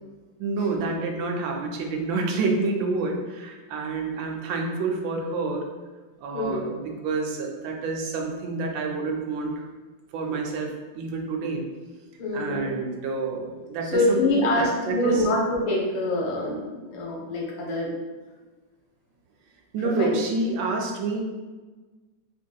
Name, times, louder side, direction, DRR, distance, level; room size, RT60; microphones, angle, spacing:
voice 1, 0.4-5.6 6.2-9.7 10.1-11.6 12.3-14.2 14.5-15.3 19.7-21.2, right 3 dB, 80° right, 1 dB, 1.3 m, -28 dB
voice 2, 12.2-12.7 13.8-17.9 20.0-20.1, left 2 dB, 90° left, -2 dB, 1.6 m, -25 dB
4.0 x 2.7 x 2.2 m, 1.3 s
omnidirectional pair, 2.1 m